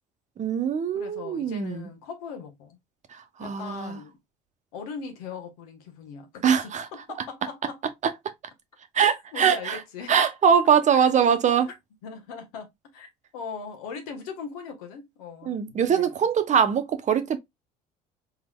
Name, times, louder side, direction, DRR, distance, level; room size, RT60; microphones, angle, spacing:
voice 1, 0.4-1.9 3.1-4.0 6.4-6.8 8.9-9.8 10.1-11.7 15.4-17.4, right 7 dB, 40° right, 0.9 m, -22 dB
voice 2, 0.9-2.8 3.4-4.2 4.7-7.8 8.9-10.1 10.9-11.1 12.0-13.1 13.3-15.6 15.8-16.2, left 6 dB, 85° left, 1.2 m, -40 dB
3.9 x 3.5 x 2.2 m
supercardioid pair, 75°, 18 cm